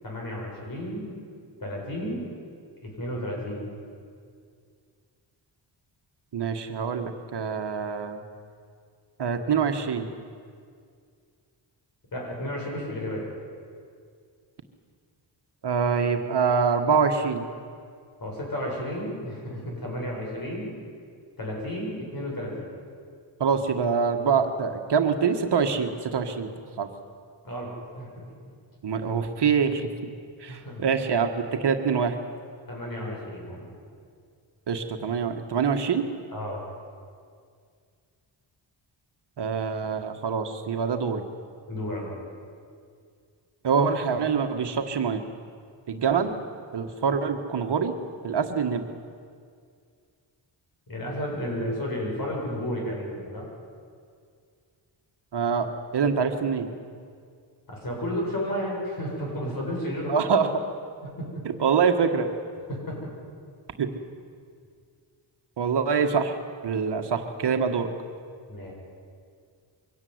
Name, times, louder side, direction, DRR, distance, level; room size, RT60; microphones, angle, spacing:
voice 1, 0.0-1.1 1.6-2.3 2.8-3.7 12.1-13.2 18.2-20.7 21.4-22.7 27.4-28.3 30.5-30.8 32.7-33.6 36.3-36.6 41.7-42.1 50.9-53.5 57.7-60.2 61.2-61.4 62.7-63.1 68.5-68.7, equal, 45° left, -2 dB, 7.6 m, -32 dB
voice 2, 6.3-8.2 9.2-10.1 15.6-17.5 23.4-26.5 26.8-26.9 28.8-29.9 30.4-32.2 34.7-36.1 39.4-41.2 43.6-45.2 45.9-46.4 46.7-48.0 48.2-48.9 55.3-56.7 60.1-60.5 61.6-62.3 63.8-63.9 65.6-66.4 66.6-67.9, right 6 dB, 60° right, 5 dB, 1.7 m, -25 dB
23.5 x 17.0 x 9.6 m, 2.2 s
wide cardioid pair, 130°, 47 cm